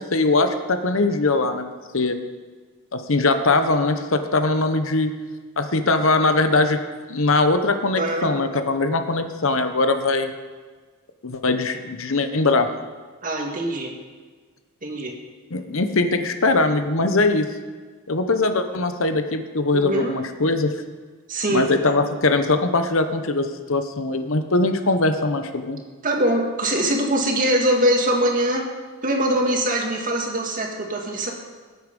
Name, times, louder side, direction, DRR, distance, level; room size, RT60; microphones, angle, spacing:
voice 1, 0.0-1.7 1.9-2.2 2.9-5.1 5.6-6.8 7.1-10.3 11.2-12.7 15.5-17.5 18.1-20.7 21.5-25.8, left 3 dB, 65° left, 8 dB, 1.0 m, -21 dB
voice 2, 7.9-8.3 13.2-14.0 14.8-15.1 19.7-20.1 21.3-21.7 26.0-28.7 29.0-31.3, right 1 dB, 40° right, 1 dB, 1.9 m, -22 dB
19.0 x 8.2 x 5.3 m, 1.4 s
head